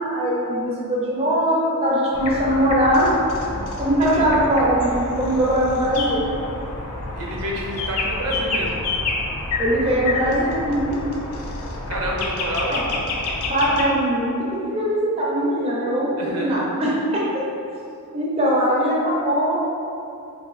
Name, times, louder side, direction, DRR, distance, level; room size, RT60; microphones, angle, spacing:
voice 1, 0.0-3.1 3.8-6.2 9.6-11.0 12.7-12.8 13.5-17.2 18.1-19.6, equal, 25° right, -5 dB, 0.4 m, -21 dB
sound 1, 2.1-13.8, left 2 dB, 80° left, 0.4 m, -28 dB
voice 2, 7.1-8.8 11.9-12.9 16.2-16.8, right 1 dB, 75° right, -2 dB, 0.5 m, -29 dB
3.9 x 2.5 x 2.4 m, 2.7 s
head